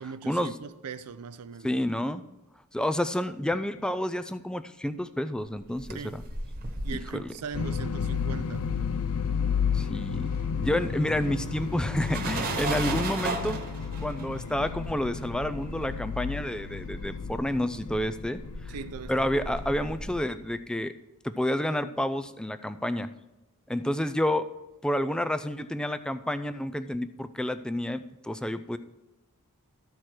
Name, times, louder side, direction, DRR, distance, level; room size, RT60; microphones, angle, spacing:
voice 1, 0.0-1.8 5.9-6.2 6.8-8.7 18.7-19.1, right 6 dB, 90° right, 0.5 m, -40 dB
voice 2, 1.6-2.2 2.7-6.2 6.9-7.3 9.7-10.3 10.6-13.6 14.0-18.7 19.1-20.9 21.2-23.1 23.7-24.5 24.8-28.8, left 1 dB, 5° left, 0.3 m, -29 dB
sound 1, 5.5-9.2 9.4-20.2, right 2 dB, 40° right, 1.3 m, -37 dB
sound 2, 7.5-20.4, left 6 dB, 65° left, 0.5 m, -33 dB
13.5 x 4.7 x 4.4 m
head